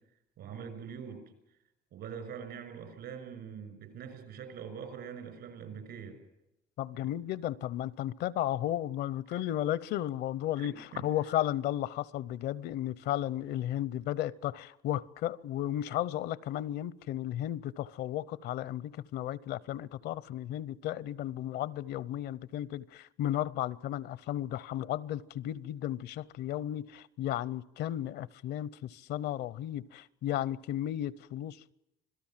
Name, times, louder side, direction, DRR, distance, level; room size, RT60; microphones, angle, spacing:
voice 1, 0.4-1.2 1.9-6.2 7.0-7.1 9.3-9.4 10.6-11.0, right 7 dB, 75° right, 6.4 m, -43 dB
voice 2, 6.8-31.7, left 12 dB, 75° left, 0.7 m, -34 dB
26.5 x 17.5 x 7.4 m
cardioid pair, 110°, 17 cm